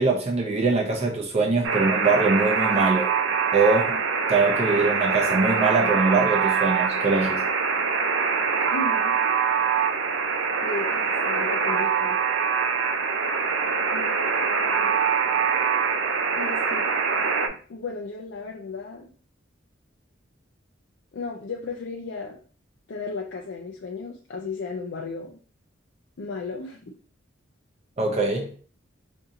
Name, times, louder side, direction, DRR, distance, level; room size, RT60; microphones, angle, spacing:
voice 1, 0.0-3.1 3.5-4.0 4.3-7.4 28.0-28.5, right 3 dB, 35° right, 0.5 m, -23 dB
Alarm, 1.6-17.5, right 5 dB, 85° right, 0.5 m, -24 dB
voice 2, 8.5-9.2 10.6-12.2 13.9-15.0 16.3-16.9 17.5-19.1 21.1-22.4 22.9-25.4 26.2-26.9, left 4 dB, 65° left, 0.5 m, -35 dB
2.7 x 2.6 x 3.6 m
head